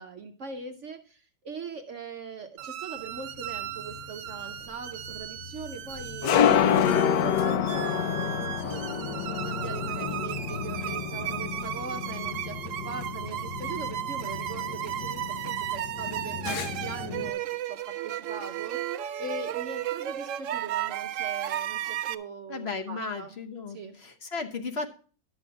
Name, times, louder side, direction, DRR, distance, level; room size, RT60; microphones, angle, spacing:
voice 1, 0.0-6.5 7.2-23.4 23.7-24.0, right 4 dB, 55° right, 6 dB, 0.9 m, -41 dB
sound 1, 2.6-22.1, right 12 dB, 90° right, 0.7 m, -35 dB
sound 2, 2.9-3.0 3.3-11.8, right 1 dB, ahead, 3.8 m, -55 dB
sound 3, 3.3-17.3, left 8 dB, 70° left, 1.3 m, -29 dB
voice 2, 22.5-24.9, left 4 dB, 45° left, 5 dB, 0.9 m, -35 dB
11.0 x 6.9 x 4.7 m, 0.41 s
omnidirectional pair, 2.0 m